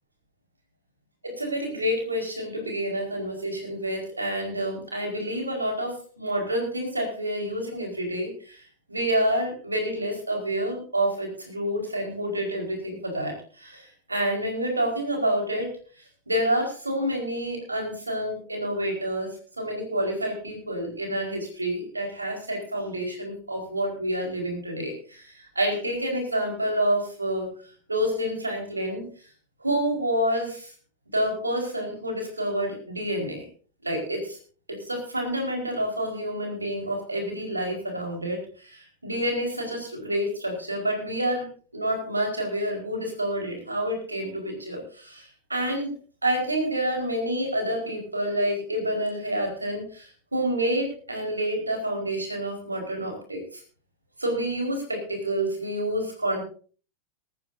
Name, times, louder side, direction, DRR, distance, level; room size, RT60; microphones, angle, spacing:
voice 1, 1.2-8.6 8.9-15.7 16.3-19.3 19.6-27.5 27.9-29.0 29.6-30.7 31.1-33.5 33.8-34.4 34.7-41.5 41.7-45.9 46.2-53.6 54.2-56.4, right 1 dB, 80° right, 2 dB, 4.8 m, -28 dB
19.5 x 14.0 x 2.7 m, 0.41 s
figure-of-eight pair, 90°, 0 cm